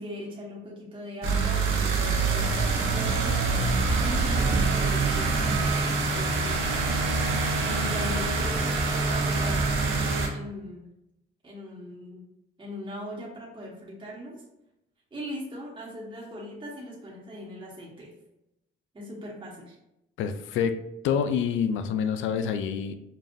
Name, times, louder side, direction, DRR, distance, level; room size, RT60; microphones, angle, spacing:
voice 1, 0.0-3.4 4.0-6.8 7.6-10.9 11.4-12.2 12.6-14.4 15.1-18.1 18.9-19.8, equal, 25° right, -5 dB, 1.1 m, -39 dB
sound 1, 1.2-10.3, right 4 dB, 85° right, 0.8 m, -25 dB
voice 2, 20.2-20.8 21.0-22.9, left 7 dB, 80° left, 9 dB, 0.4 m, -27 dB
5.3 x 2.3 x 2.5 m, 0.86 s
cardioid pair, 90°, 20 cm